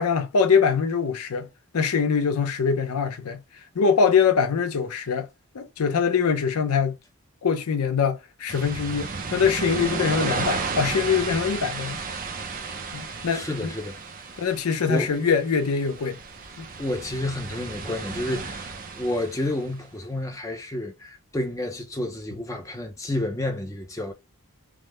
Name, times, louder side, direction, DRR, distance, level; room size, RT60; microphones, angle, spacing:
voice 1, 0.0-1.5 1.7-3.4 3.7-5.3 5.5-7.0 7.4-12.0 12.9-13.7 14.4-16.2 16.6-16.7, left 6 dB, 85° left, 0.6 m, -23 dB
sound 1, 8.5-19.7, right 4 dB, 40° right, 0.4 m, -33 dB
voice 2, 13.3-14.0 14.9-15.2 16.8-24.1, left 1 dB, 15° left, 0.5 m, -30 dB
3.5 x 2.1 x 3.0 m
head